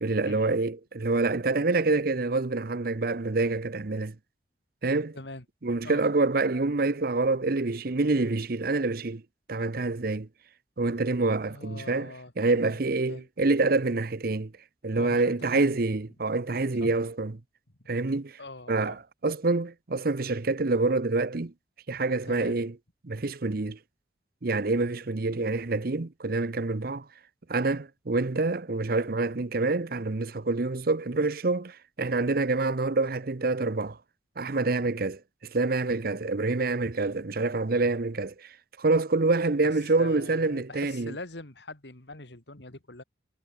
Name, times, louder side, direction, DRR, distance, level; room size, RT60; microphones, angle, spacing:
voice 1, 0.0-4.1 4.8-5.2 5.6-9.2 9.5-10.3 10.8-14.5 14.8-17.4 17.9-18.4 18.7-21.5 21.9-22.7 23.0-23.8 24.4-27.1 27.5-34.0 34.4-35.2 35.5-38.5 38.8-41.1, right 3 dB, 55° right, 0.8 m, -27 dB
voice 2, 5.1-5.4 5.8-6.0 11.5-13.3 14.9-15.8 16.8-16.9 17.8-17.9 18.4-19.0 22.2-22.6 24.8-24.9 39.6-43.0, left 2 dB, 75° left, 2.9 m, -43 dB
head